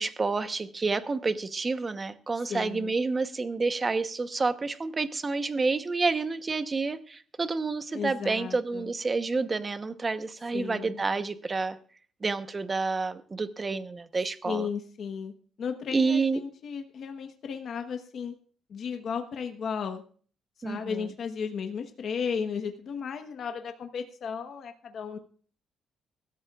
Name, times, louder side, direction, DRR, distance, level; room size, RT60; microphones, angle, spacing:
voice 1, 0.0-11.8 12.2-14.7 15.9-16.4 20.6-21.1, right 4 dB, 20° right, 10 dB, 0.9 m, -29 dB
voice 2, 2.5-2.9 7.9-8.9 10.5-11.0 14.4-15.3 15.6-18.3 18.7-20.0 20.6-25.2, left 6 dB, 50° left, 5 dB, 1.1 m, -34 dB
23.5 x 13.5 x 2.4 m, 0.44 s
cardioid pair, 165°, 0 cm